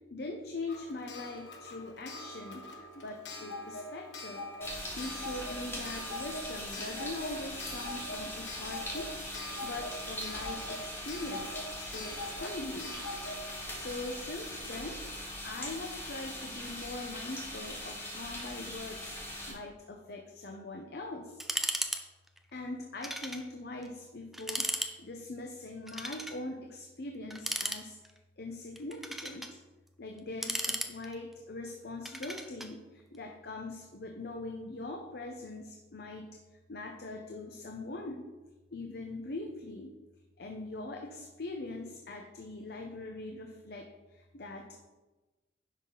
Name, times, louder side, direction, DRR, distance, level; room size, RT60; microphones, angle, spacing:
voice 1, 0.1-4.5 5.0-13.0 13.5-15.1 15.4-21.4 22.5-28.0 28.4-29.6 30.0-36.3 36.7-38.3 38.7-39.9 40.4-44.9, left 2 dB, 60° left, 3 dB, 0.7 m, -42 dB
Clock, 0.7-15.3 16.4-16.5 16.7-16.8, left 1 dB, 80° left, 1.3 m, -44 dB
sound 1, 4.6-19.5, left 1 dB, 15° left, 1.8 m, -41 dB
sound 2, 21.4-22.0 22.3-22.4 23.0-23.4 23.8-23.9 24.3-24.9 25.9-26.4 27.3-28.2 28.8-29.5 30.2-31.3 32.0-32.7, equal, ahead, 0.5 m, -35 dB
10.5 x 5.7 x 3.9 m, 1.2 s
head